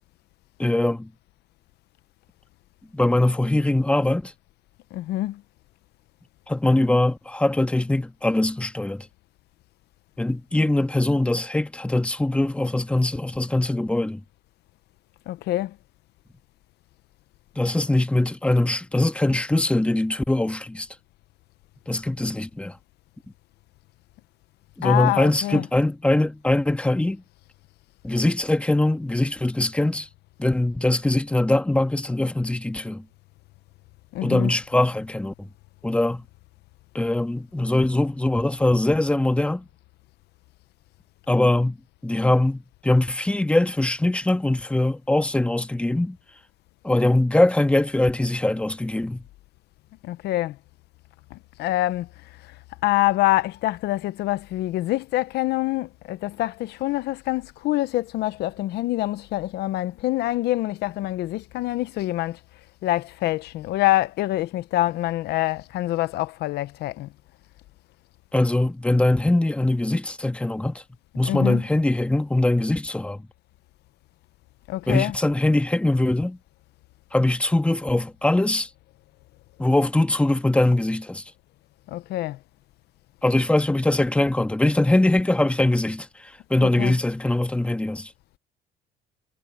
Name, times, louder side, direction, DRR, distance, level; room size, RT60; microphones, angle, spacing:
voice 1, 0.6-1.1 2.9-4.3 6.5-9.1 10.2-14.2 17.5-20.9 21.9-22.8 24.8-27.2 28.0-30.1 30.4-33.0 34.2-35.5 35.8-36.2 36.9-39.6 41.3-41.8 42.0-46.2 46.8-49.2 68.3-70.8 71.1-73.2 74.9-76.4 77.1-78.7 79.6-81.2 83.2-88.1, left 1 dB, 5° left, 1.5 m, -22 dB
voice 2, 4.9-5.4 15.3-15.7 24.8-25.7 34.1-34.5 50.0-50.6 51.3-52.1 52.8-62.4 62.8-67.1 71.2-71.6 74.7-75.2 81.9-82.4 86.6-87.0, left 16 dB, 75° left, 0.8 m, -25 dB
cardioid pair, 110°, 17 cm